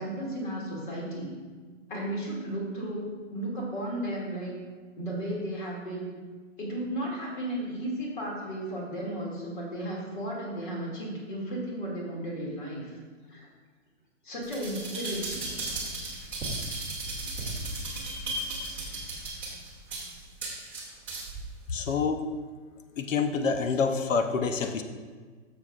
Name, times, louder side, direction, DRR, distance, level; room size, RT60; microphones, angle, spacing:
voice 1, 0.0-1.3 1.9-4.5 5.0-6.2 6.6-13.0 13.3-13.5 14.2-15.5, right 1 dB, 40° left, -3 dB, 2.5 m, -34 dB
sound 1, 14.4-21.4 21.9-22.0, right 2 dB, 5° right, 0.9 m, -35 dB
voice 2, 21.7-22.2 23.0-24.8, left 5 dB, 80° left, 7 dB, 0.9 m, -27 dB
11.5 x 6.9 x 2.5 m, 1.5 s
hypercardioid pair, 175°, 38 cm